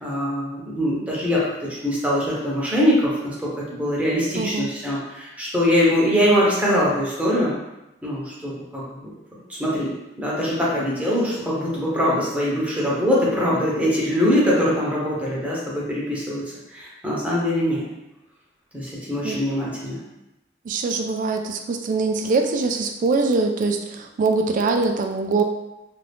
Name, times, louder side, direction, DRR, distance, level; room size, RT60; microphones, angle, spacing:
voice 1, 0.0-3.5 3.8-7.6 8.0-9.1 9.5-16.4 16.7-17.8 18.7-20.0, equal, 10° right, -6 dB, 0.8 m, -22 dB
voice 2, 4.3-4.7 19.2-19.4 20.7-25.4, right 3 dB, 45° right, 5 dB, 0.3 m, -23 dB
2.5 x 2.4 x 3.4 m, 0.95 s
head